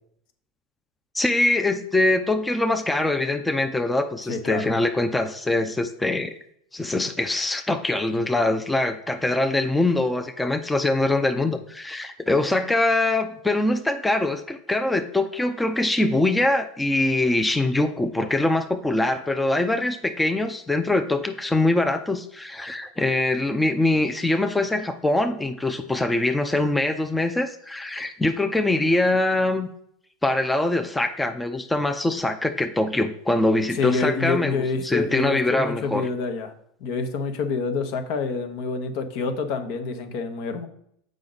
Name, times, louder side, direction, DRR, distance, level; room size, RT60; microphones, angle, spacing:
voice 1, 1.1-6.3 6.7-29.7 30.2-36.1, left 2 dB, 10° left, 7 dB, 0.5 m, -23 dB
voice 2, 4.3-4.7 11.4-11.5 33.7-36.5 36.8-40.7, left 4 dB, 60° left, 7 dB, 1.0 m, -27 dB
7.4 x 5.2 x 4.0 m, 0.70 s
hypercardioid pair, 110°, 0 cm